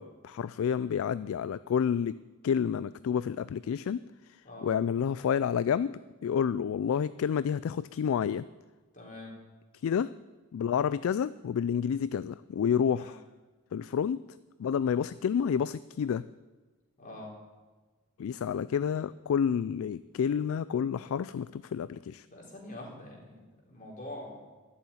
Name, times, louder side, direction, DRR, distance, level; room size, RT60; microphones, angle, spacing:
voice 1, 0.0-2.2 2.4-8.5 9.8-10.1 10.5-13.2 13.7-14.2 14.6-16.3 18.2-22.3, left 7 dB, 65° left, 16 dB, 0.3 m, -29 dB
voice 2, 8.9-9.3 12.9-13.2 15.0-15.1 17.0-17.3 22.3-24.4, left 1 dB, 40° left, -2 dB, 3.9 m, -45 dB
12.0 x 7.0 x 9.9 m, 1.3 s
head